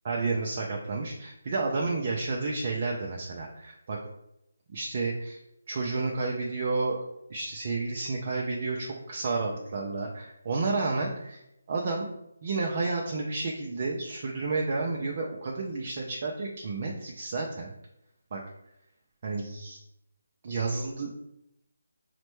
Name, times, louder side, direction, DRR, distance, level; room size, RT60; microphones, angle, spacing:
voice 1, 0.1-4.0 4.7-5.4 5.7-7.0 7.3-11.4 11.7-12.1 12.4-17.7 18.3-18.4 19.2-19.8 20.4-21.1, right 3 dB, 45° right, -1 dB, 0.5 m, -31 dB
4.2 x 2.1 x 3.0 m, 0.81 s
figure-of-eight pair, 160°, 0 cm